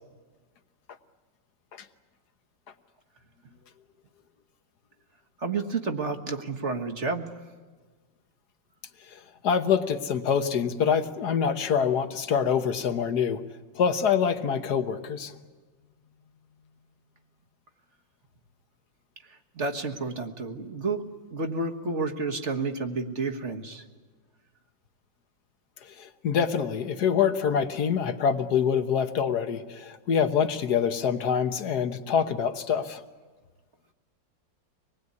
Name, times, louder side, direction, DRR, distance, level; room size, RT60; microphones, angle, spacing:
voice 1, 5.4-7.3 19.2-23.8, right 3 dB, 40° right, 4 dB, 1.7 m, -31 dB
voice 2, 9.1-13.4 13.7-15.3 26.0-33.0, left 7 dB, 60° left, 9 dB, 1.7 m, -25 dB
25.0 x 20.0 x 9.6 m, 1.4 s
omnidirectional pair, 2.0 m